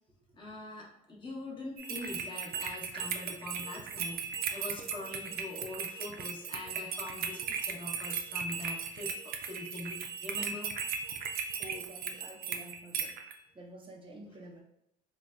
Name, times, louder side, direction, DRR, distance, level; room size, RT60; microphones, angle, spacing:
voice 1, 0.3-10.7, left 2 dB, 30° left, -2 dB, 0.9 m, -43 dB
sound 1, 1.8-13.3, right 6 dB, 60° right, 0.4 m, -37 dB
voice 2, 11.6-13.1 13.5-14.6, right 1 dB, 30° right, 0 dB, 0.7 m, -49 dB
3.8 x 2.2 x 2.3 m, 0.81 s
cardioid pair, 110°, 17 cm